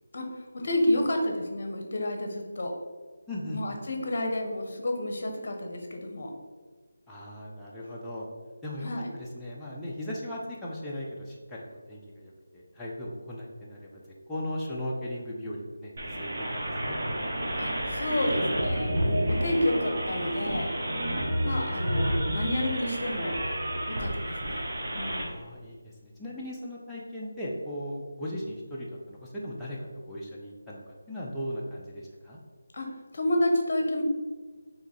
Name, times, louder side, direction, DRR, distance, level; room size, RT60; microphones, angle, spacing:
voice 1, 0.5-2.7 3.5-6.3 8.8-9.1 17.6-20.8 21.4-23.4 23.9-24.6 24.9-25.3 32.7-32.9 33.1-34.0, left 1 dB, 50° left, 3 dB, 0.8 m, -30 dB
voice 2, 3.3-3.8 7.1-8.3 8.6-14.0 14.3-17.0 19.3-19.5 25.1-32.4, left 1 dB, 5° left, -7 dB, 0.5 m, -38 dB
sound 1, 16.0-25.2, right 1 dB, 40° right, 0.9 m, -30 dB
3.5 x 3.0 x 4.2 m, 1.5 s
figure-of-eight pair, 165°, 0 cm